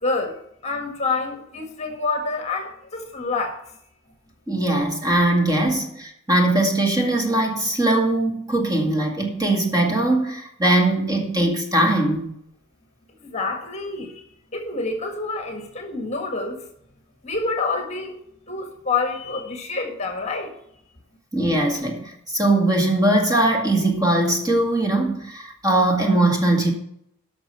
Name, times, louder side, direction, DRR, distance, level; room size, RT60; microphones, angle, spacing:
voice 1, 0.0-3.7 13.2-14.2 14.5-16.6 17.2-18.1 18.5-20.5, left 3 dB, 35° left, 5 dB, 1.6 m, -27 dB
voice 2, 4.5-12.3 21.3-26.7, right 1 dB, 20° right, 1 dB, 2.0 m, -20 dB
12.5 x 6.1 x 5.6 m, 0.73 s
head